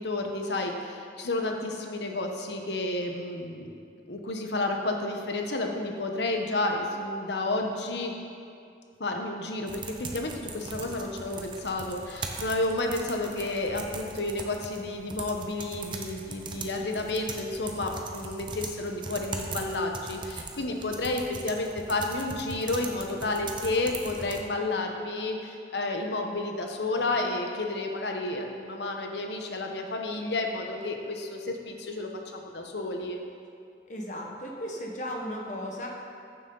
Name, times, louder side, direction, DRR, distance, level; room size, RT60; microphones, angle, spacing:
voice 1, 0.0-3.7 4.1-8.1 9.0-33.2, left 2 dB, 80° left, 3 dB, 1.1 m, -31 dB
sound 1, 9.7-24.4, right 3 dB, 25° right, 0.7 m, -40 dB
voice 2, 33.9-35.9, equal, 45° left, 0 dB, 1.4 m, -35 dB
14.5 x 7.4 x 4.0 m, 2.4 s
head